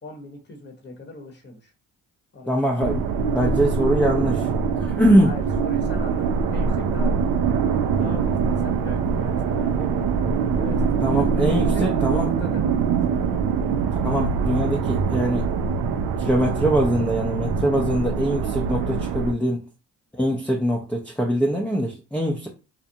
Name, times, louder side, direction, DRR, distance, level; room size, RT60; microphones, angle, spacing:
voice 1, 0.0-1.7 2.3-2.5 5.2-7.1 7.9-13.2 19.4-19.6, left 2 dB, 30° left, 0.9 m, -40 dB
voice 2, 2.5-3.0 3.3-4.5 4.8-5.3 11.0-12.3 14.0-15.5 16.2-19.6 20.1-22.5, equal, 5° left, 0.5 m, -22 dB
sound 1, 2.8-19.3, right 6 dB, 65° right, 0.5 m, -23 dB
2.5 x 2.1 x 2.7 m
supercardioid pair, 55°, 38 cm